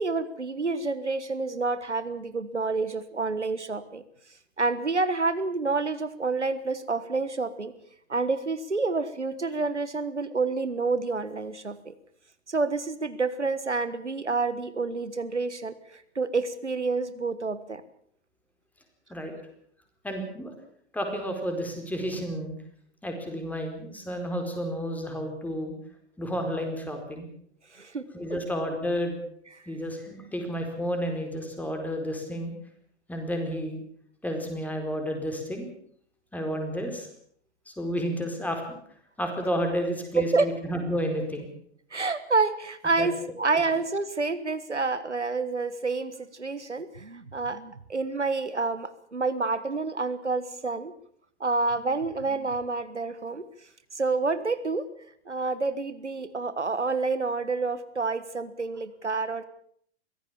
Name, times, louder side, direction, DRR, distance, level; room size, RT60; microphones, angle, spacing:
voice 1, 0.0-4.0 4.6-7.7 8.1-11.9 12.5-17.8 27.7-28.4 29.5-29.6 40.1-40.5 41.9-50.9 51.4-53.4 53.9-54.9 55.3-59.4, right 3 dB, 85° right, 13 dB, 1.6 m, -28 dB
voice 2, 20.0-20.5 20.9-22.5 23.0-25.7 26.2-27.3 28.1-29.2 29.7-32.5 33.1-33.8 34.2-35.7 36.3-37.1 37.7-38.8 39.2-41.5 43.0-43.1 43.4-43.5, equal, 5° left, 4 dB, 4.6 m, -31 dB
23.5 x 17.0 x 7.2 m, 0.63 s
figure-of-eight pair, 110°, 34 cm